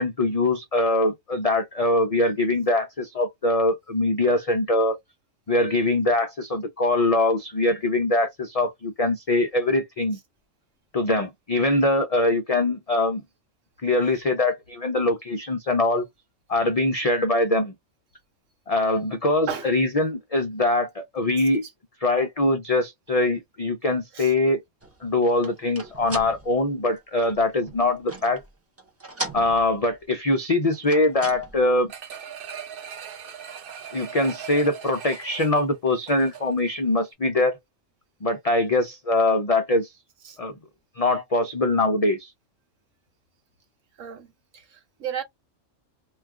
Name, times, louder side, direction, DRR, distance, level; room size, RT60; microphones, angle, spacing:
voice 1, 0.0-5.0 5.5-10.2 10.9-13.2 13.8-16.1 16.5-17.7 18.7-21.6 22.0-24.6 25.0-28.4 29.3-31.9 33.9-37.6 38.2-39.9 40.4-40.5 41.0-42.3, left 2 dB, 70° left, 0.3 m, -23 dB
sound 1, 24.8-28.5 28.8-30.0 30.7-31.8, right 1 dB, 25° right, 0.3 m, -38 dB
sound 2, 31.9-36.7 37.1-37.2, right 8 dB, 55° right, 0.7 m, -40 dB
voice 2, 44.0-45.2, right 8 dB, 80° right, 1.2 m, -34 dB
2.3 x 2.3 x 3.5 m
omnidirectional pair, 1.3 m